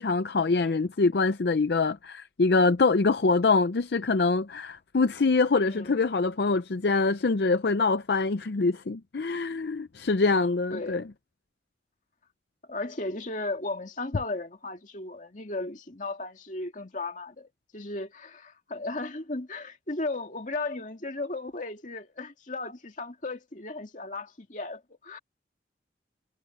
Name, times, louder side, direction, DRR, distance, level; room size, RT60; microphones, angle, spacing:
voice 1, 0.0-11.0, left 3 dB, 65° left, 0.5 m, -24 dB
voice 2, 10.7-11.0 12.7-25.2, left 2 dB, 45° left, 2.2 m, -35 dB
head